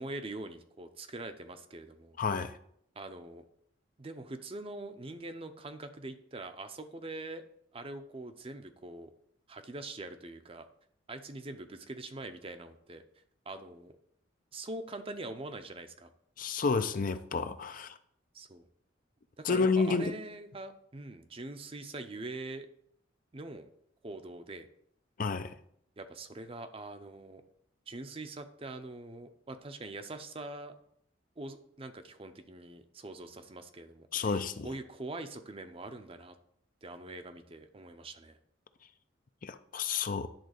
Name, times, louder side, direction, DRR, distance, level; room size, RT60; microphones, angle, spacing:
voice 1, 0.0-2.2 3.0-3.4 4.0-7.4 7.7-9.1 9.5-10.7 11.1-13.0 13.5-14.0 14.5-16.1 18.3-18.7 19.4-22.7 23.3-23.7 24.0-24.7 26.0-27.4 27.9-30.8 31.4-36.4 36.8-38.4, right 2 dB, 30° right, 8 dB, 0.7 m, -43 dB
voice 2, 2.2-2.6 16.4-18.0 19.4-20.1 25.2-25.6 34.1-34.7 39.4-40.3, left 4 dB, 45° left, 10 dB, 0.5 m, -30 dB
10.5 x 3.9 x 6.5 m, 0.68 s
head